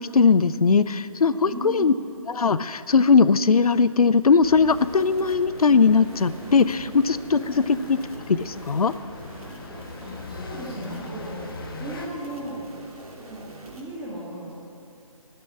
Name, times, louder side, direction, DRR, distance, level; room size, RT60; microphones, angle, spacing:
voice 1, 0.0-1.9 2.3-8.0 8.3-8.9, left 5 dB, 90° left, 15 dB, 0.5 m, -19 dB
voice 2, 1.4-2.0 7.4-7.8 10.0-11.5 11.8-12.7 13.1-13.5 13.8-14.5, right 1 dB, 5° right, -8 dB, 2.3 m, -36 dB
sound 1, 4.4-12.1, left 3 dB, 40° left, 1.0 m, -41 dB
sound 2, 4.7-13.8, right 2 dB, 85° right, 3.0 m, -44 dB
12.5 x 6.9 x 9.9 m, 2.7 s
figure-of-eight pair, 160°, 18 cm